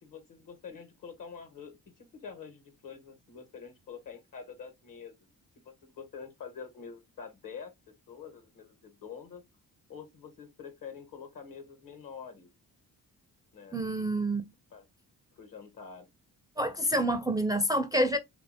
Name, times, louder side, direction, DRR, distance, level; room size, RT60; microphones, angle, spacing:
voice 1, 0.0-5.1 5.8-7.7 8.1-9.4 9.9-12.5 13.5-13.8 14.7-14.8 15.3-16.1, left 6 dB, 60° left, 1.2 m, -46 dB
voice 2, 13.7-14.5 16.6-18.2, right 1 dB, 10° right, 0.4 m, -28 dB
2.8 x 2.6 x 2.6 m
supercardioid pair, 60°, 37 cm